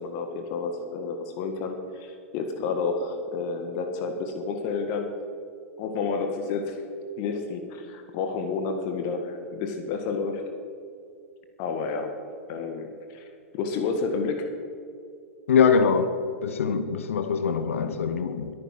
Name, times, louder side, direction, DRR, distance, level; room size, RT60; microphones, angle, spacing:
voice 1, 0.0-5.1 5.8-6.8 7.2-10.4 11.6-12.1 12.5-13.3 13.5-14.5, left 4 dB, 45° left, 1.8 m, -30 dB
voice 2, 15.5-16.1 16.4-18.5, left 6 dB, 70° left, 1.1 m, -23 dB
22.0 x 9.6 x 6.0 m
figure-of-eight pair, 100°, 7 cm